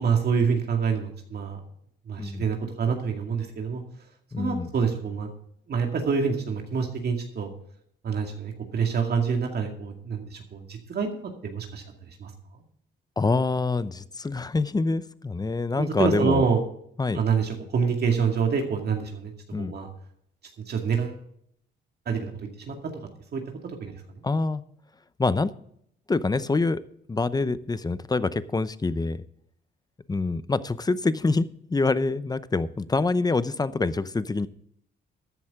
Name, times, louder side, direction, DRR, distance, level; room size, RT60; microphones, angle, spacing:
voice 1, 0.0-1.6 2.1-3.8 4.4-5.3 5.7-7.5 8.0-12.3 15.8-16.6 17.1-19.9 20.7-21.2 22.1-22.9 23.3-24.2, right 6 dB, 55° right, 3 dB, 2.2 m, -27 dB
voice 2, 4.3-4.7 13.2-16.4 17.0-17.2 19.5-19.8 24.2-24.6 25.2-25.5 26.1-26.8 27.1-29.3 30.1-34.5, left 3 dB, 20° left, 15 dB, 0.7 m, -26 dB
14.0 x 10.5 x 3.7 m, 0.70 s
cardioid pair, 90°, 20 cm